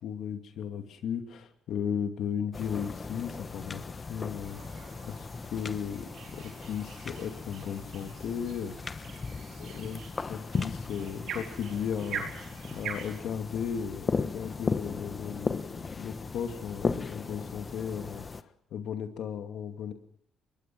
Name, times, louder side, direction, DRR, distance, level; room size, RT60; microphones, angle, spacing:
voice 1, 0.0-9.0 9.6-19.9, left 8 dB, 75° left, 6 dB, 2.5 m, -36 dB
sound 1, 2.5-18.4, left 4 dB, 35° left, 1.1 m, -37 dB
sound 2, 4.4-13.2, right 7 dB, 75° right, 4.5 m, -44 dB
24.0 x 20.5 x 6.1 m, 0.69 s
cardioid pair, 90°, 0 cm